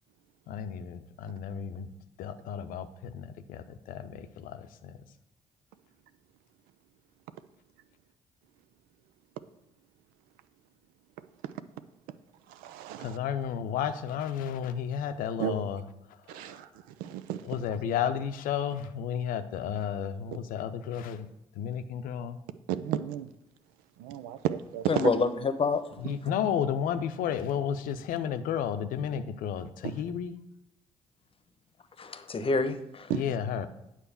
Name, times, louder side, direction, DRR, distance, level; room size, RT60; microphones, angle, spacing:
voice 1, 0.5-1.9 2.2-5.0 13.0-15.8 16.3-16.6 17.4-21.3 21.5-22.4 26.0-30.3 33.1-33.7, left 8 dB, 65° left, 0.7 m, -32 dB
voice 2, 12.5-13.2 15.4-15.6 16.3-16.7 17.0-17.4 22.7-23.3 24.0-25.1 33.1-33.2, right 11 dB, 70° right, 0.5 m, -32 dB
voice 3, 24.9-26.0 32.0-33.1, left 4 dB, 35° left, 0.9 m, -28 dB
9.0 x 4.5 x 6.9 m
figure-of-eight pair, 45°, 15 cm